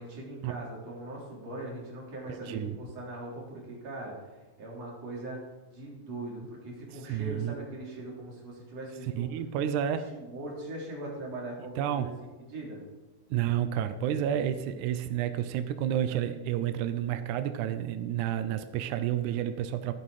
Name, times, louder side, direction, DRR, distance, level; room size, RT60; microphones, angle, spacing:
voice 1, 0.0-5.4 5.7-9.3 9.6-12.1 12.5-12.8, right 1 dB, 45° right, -3 dB, 4.3 m, -41 dB
voice 2, 2.3-2.8 7.1-7.6 9.2-10.1 11.8-12.1 13.3-19.9, right 10 dB, 85° right, 10 dB, 1.7 m, -30 dB
14.0 x 9.8 x 4.9 m, 1.2 s
omnidirectional pair, 4.4 m